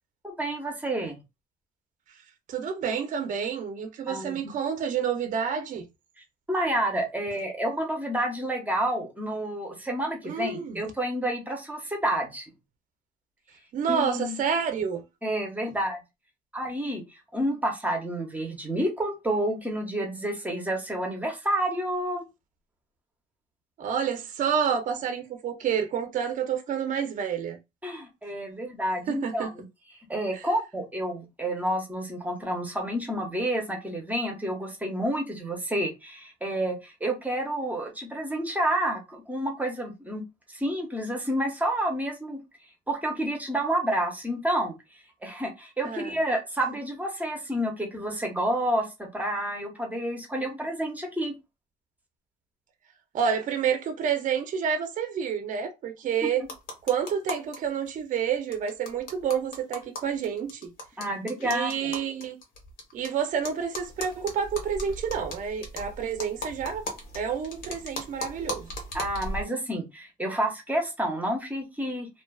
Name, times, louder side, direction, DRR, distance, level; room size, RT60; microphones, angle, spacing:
voice 1, 0.2-1.2 4.1-4.5 6.5-12.5 13.9-14.4 15.2-16.0 16.5-17.0 17.3-22.2 27.8-29.6 30.1-42.4 42.9-44.8 45.2-51.4 56.2-56.3 61.0-61.9 68.9-72.1, right 1 dB, 10° right, 0.8 m, -29 dB
voice 2, 2.5-5.9 10.2-10.8 13.7-15.0 23.8-27.6 29.1-29.5 30.3-30.5 45.8-46.2 53.1-56.4 56.8-60.7 61.4-62.4 62.9-66.8 67.1-68.8, right 7 dB, 50° right, 0.6 m, -29 dB
sound 1, 56.4-57.6 57.9-58.0 58.2-58.3 58.5-63.1 63.4-69.4, left 1 dB, 60° left, 1.1 m, -37 dB
2.4 x 2.3 x 2.3 m
cardioid pair, 110°, 17 cm